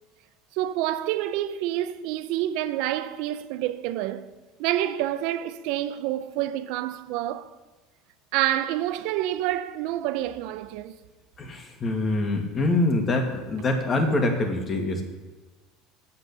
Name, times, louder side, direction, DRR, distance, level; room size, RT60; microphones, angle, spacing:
voice 1, 0.5-4.3 4.6-7.5 8.3-11.0, right 13 dB, 70° right, 0.7 m, -28 dB
voice 2, 11.4-15.0, left 2 dB, 30° left, 2.0 m, -25 dB
8.5 x 7.7 x 7.0 m
supercardioid pair, 115°, 0 cm